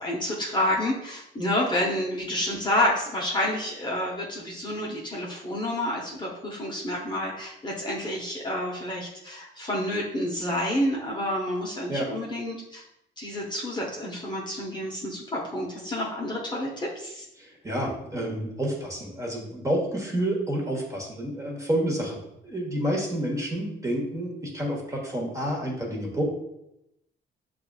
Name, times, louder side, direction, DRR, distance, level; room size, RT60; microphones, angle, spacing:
voice 1, 0.0-12.8 13.2-17.2, left 1 dB, 20° left, -3 dB, 0.8 m, -29 dB
voice 2, 17.4-26.2, right 1 dB, 15° right, -1 dB, 1.1 m, -29 dB
6.5 x 2.4 x 2.3 m, 0.84 s
cardioid pair, 90°, 20 cm